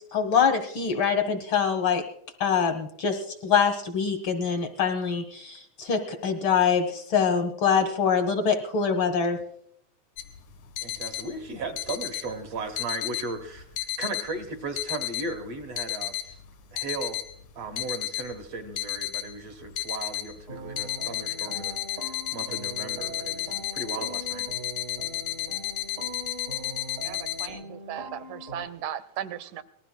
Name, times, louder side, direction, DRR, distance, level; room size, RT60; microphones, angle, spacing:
voice 1, 0.0-2.0 2.4-9.4, left 6 dB, 70° left, 7 dB, 1.2 m, -24 dB
sound 1, 10.2-27.5, left 12 dB, 90° left, 2.8 m, -33 dB
voice 2, 10.8-13.7 14.0-16.4 16.7-17.2 17.6-24.4, right 3 dB, 65° right, 4 dB, 1.8 m, -36 dB
sound 2, 20.5-28.7, right 1 dB, 45° right, 1.0 m, -41 dB
voice 3, 27.0-29.6, right 10 dB, 85° right, 11 dB, 2.2 m, -37 dB
26.0 x 19.5 x 2.2 m, 0.68 s
omnidirectional pair, 3.5 m